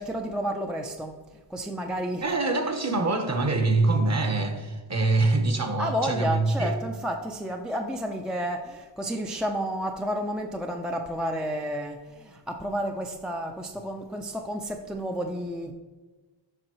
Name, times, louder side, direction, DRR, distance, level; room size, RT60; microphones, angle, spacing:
voice 1, 0.0-2.4 5.8-15.7, equal, ahead, 0.4 m, -31 dB
voice 2, 2.2-6.7, right 2 dB, 35° right, 1.0 m, -24 dB
7.7 x 5.3 x 3.0 m
cardioid pair, 65°, 47 cm